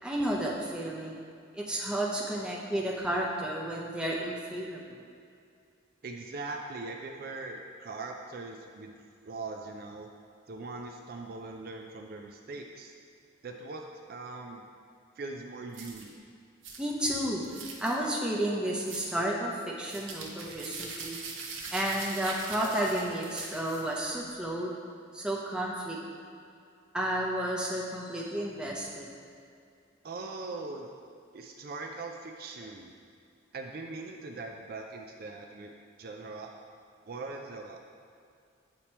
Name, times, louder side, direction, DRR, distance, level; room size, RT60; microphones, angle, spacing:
voice 1, 0.0-1.2 1.5-5.0 16.8-17.4 17.8-21.2 21.7-24.7 25.1-26.0 26.9-29.1, right 1 dB, 5° right, -3 dB, 0.6 m, -32 dB
voice 2, 6.0-8.9 9.2-10.1 10.5-12.9 13.4-14.7 15.2-16.2 30.0-30.9 31.3-32.9 33.5-36.5 37.1-37.8, right 3 dB, 50° right, 2 dB, 0.4 m, -41 dB
sound 1, 15.7-16.1 16.6-16.8 17.4-18.0 18.8-19.1 19.8-24.1, right 4 dB, 90° right, 0.8 m, -42 dB
8.5 x 2.9 x 4.2 m, 2.4 s
head